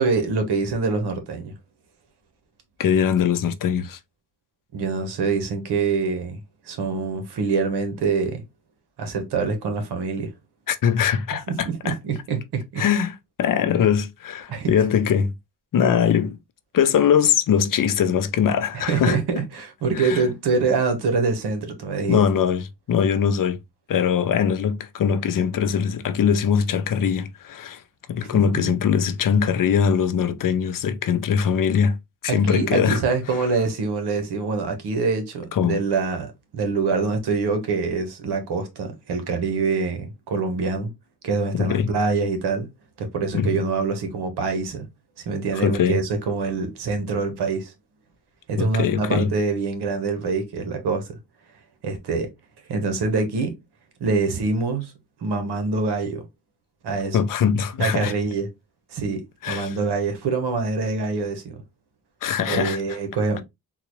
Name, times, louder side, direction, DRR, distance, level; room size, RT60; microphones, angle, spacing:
voice 1, 0.0-1.5 4.7-6.4 6.7-8.4 9.0-10.3 11.5-12.8 14.5-14.7 18.9-22.2 28.2-28.6 32.3-40.9 41.2-42.7 43.0-44.9 45.3-47.7 48.5-51.2 51.8-52.3 52.7-53.5 54.0-54.9 55.2-56.2 56.8-57.2 57.8-58.5 58.9-61.5 62.5-63.4, right 4 dB, 85° right, 1.1 m, -25 dB
voice 2, 2.8-4.0 10.7-12.0 12.8-15.3 15.7-16.4 16.7-19.2 19.9-20.2 22.1-23.6 23.9-27.8 28.1-32.0 32.2-33.0 33.3-33.4 35.5-35.8 41.5-41.9 43.3-43.6 45.5-46.0 48.6-49.3 57.1-58.1 59.4-59.8 62.2-62.8, left 7 dB, 55° left, 0.6 m, -21 dB
3.8 x 2.3 x 3.0 m
cardioid pair, 85°, 38 cm